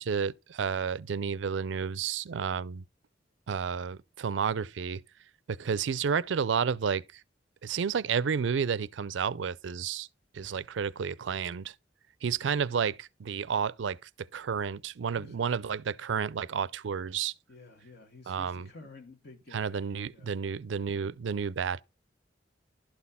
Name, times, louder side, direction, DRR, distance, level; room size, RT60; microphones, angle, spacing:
voice 1, 0.0-2.8 3.5-5.0 5.5-7.2 7.6-10.1 10.3-11.7 12.2-17.3 18.3-18.7 19.5-21.8, right 6 dB, 80° right, 0.4 m, -31 dB
voice 2, 15.1-15.6 17.5-19.8 20.1-20.3, left 3 dB, 60° left, 1.4 m, -51 dB
12.0 x 4.2 x 5.5 m
head